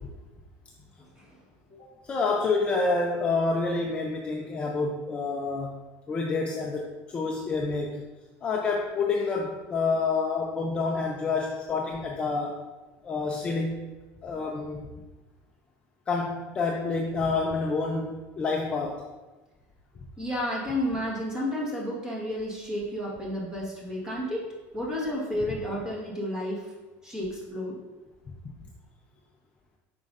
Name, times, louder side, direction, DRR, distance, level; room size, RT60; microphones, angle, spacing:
voice 1, 2.1-5.8 6.1-8.0 8.4-12.6 13.0-13.8 14.2-14.9 16.1-19.0, left 4 dB, 20° left, 0 dB, 0.4 m, -28 dB
voice 2, 20.2-24.4 24.7-26.7 27.0-27.8, left 1 dB, 10° right, -4 dB, 1.3 m, -31 dB
7.2 x 5.2 x 2.5 m, 1.2 s
cardioid pair, 175°, 6 cm